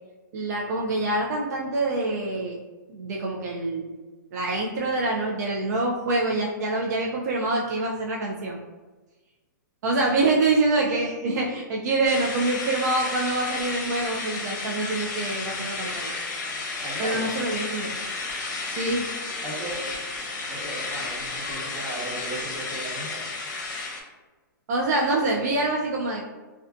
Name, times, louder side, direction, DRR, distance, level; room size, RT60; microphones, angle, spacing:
voice 1, 0.3-2.6 2.9-3.9 4.3-8.6 9.8-16.1 17.0-17.9 18.8-19.0 24.7-26.2, right 2 dB, 55° right, -1 dB, 0.4 m, -25 dB
sound 1, 12.0-24.0, left 3 dB, 60° left, 0.7 m, -32 dB
voice 2, 16.8-17.3 19.4-19.8 20.5-23.4, right 1 dB, 15° right, -5 dB, 0.7 m, -37 dB
2.4 x 2.3 x 2.2 m, 1.2 s
hypercardioid pair, 140°, 11 cm